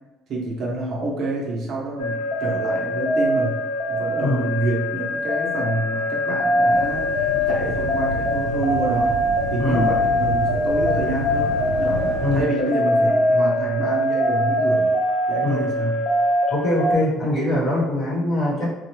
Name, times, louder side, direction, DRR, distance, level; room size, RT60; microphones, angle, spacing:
voice 1, 0.3-3.6 3.9-9.1 9.5-14.9 15.3-16.1, right 1 dB, 45° right, -3 dB, 0.7 m, -27 dB
sound 1, 2.0-16.9, left 1 dB, 50° left, 0.7 m, -22 dB
sound 2, 6.7-12.4, right 2 dB, 85° right, 0.8 m, -30 dB
voice 2, 9.6-9.9 12.2-12.5 15.4-15.6 16.5-18.7, left 1 dB, 30° left, -4 dB, 1.1 m, -22 dB
4.1 x 2.2 x 2.9 m, 1.1 s
cardioid pair, 175°, 0 cm